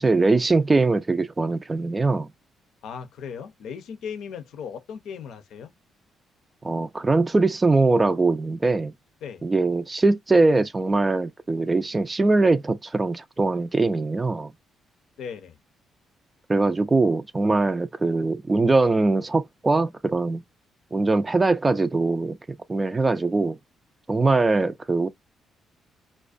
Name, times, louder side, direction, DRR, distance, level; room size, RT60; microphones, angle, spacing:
voice 1, 0.0-2.3 6.6-8.9 9.4-14.5 16.5-20.4 20.9-23.6 24.1-25.1, right 3 dB, 20° right, 0.3 m, -22 dB
voice 2, 2.8-5.7 9.2-9.5 15.2-15.6, left 7 dB, 75° left, 0.6 m, -37 dB
2.5 x 2.1 x 2.4 m
cardioid pair, 90°, 0 cm